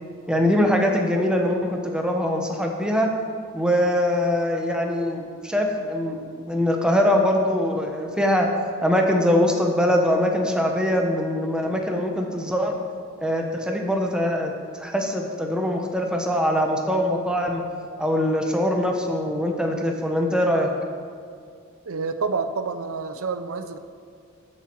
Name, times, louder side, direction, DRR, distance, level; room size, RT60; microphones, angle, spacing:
voice 1, 0.3-3.1 3.5-8.5 8.8-12.7 13.2-17.6 18.0-20.7, left 1 dB, 5° right, 2 dB, 1.0 m, -22 dB
voice 2, 21.9-23.8, right 4 dB, 85° right, 10 dB, 0.6 m, -28 dB
13.0 x 7.4 x 4.6 m, 2.2 s
head